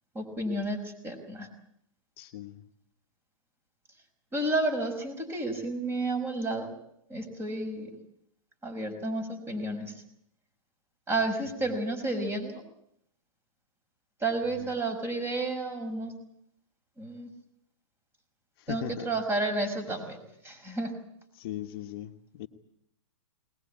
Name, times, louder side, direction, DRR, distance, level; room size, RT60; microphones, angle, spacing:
voice 1, 0.1-1.5 4.3-6.7 7.1-7.9 8.6-9.9 11.1-12.6 14.2-16.1 17.0-17.3 18.7-20.2 20.4-20.9, right 2 dB, 15° right, 7 dB, 5.6 m, -31 dB
voice 2, 2.2-2.6 14.6-14.7 18.6-19.1 21.3-22.5, left 12 dB, 45° left, 5 dB, 1.4 m, -39 dB
21.0 x 21.0 x 8.6 m, 0.73 s
hypercardioid pair, 140°, 17 cm